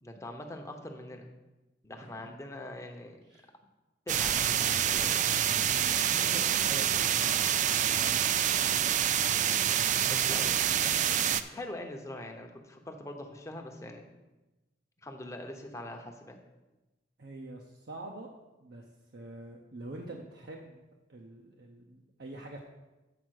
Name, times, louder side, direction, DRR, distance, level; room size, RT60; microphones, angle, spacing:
voice 1, 0.0-1.3 1.8-3.2 4.1-5.3 6.0-6.3 10.1-10.6 11.5-14.1 15.0-16.4, left 1 dB, 15° left, 3 dB, 0.8 m, -43 dB
voice 2, 1.9-2.4 3.3-3.5 5.7-7.2 17.2-18.3 18.6-18.8 19.1-20.8 21.1-22.6, right 2 dB, 60° right, 0 dB, 0.7 m, -45 dB
sound 1, 4.1-11.4, right 9 dB, 40° right, 0.3 m, -27 dB
7.8 x 4.7 x 6.3 m, 1.1 s
head